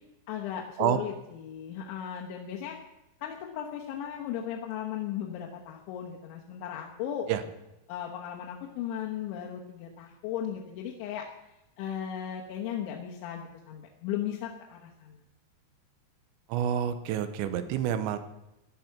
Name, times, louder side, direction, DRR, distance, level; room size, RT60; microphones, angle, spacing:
voice 1, 0.3-2.8 3.2-7.3 7.9-11.3 11.8-15.2, left 9 dB, 80° left, -1 dB, 3.5 m, -36 dB
voice 2, 16.5-18.2, right 9 dB, 80° right, 10 dB, 3.2 m, -28 dB
15.0 x 11.0 x 5.9 m, 0.92 s
omnidirectional pair, 5.3 m